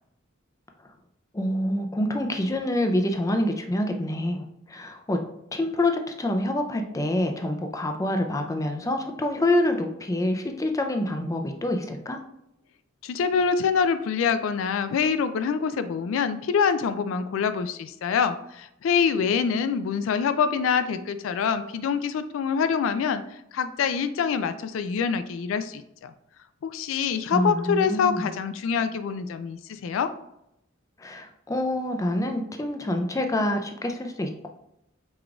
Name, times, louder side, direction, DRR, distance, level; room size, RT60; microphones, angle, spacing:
voice 1, 1.3-5.2 5.5-12.2 27.3-28.3 31.0-34.5, left 1 dB, 15° left, 4 dB, 0.4 m, -26 dB
voice 2, 13.0-26.1 26.6-30.1, left 6 dB, 75° left, 11 dB, 0.3 m, -25 dB
4.9 x 3.6 x 2.3 m, 0.81 s
head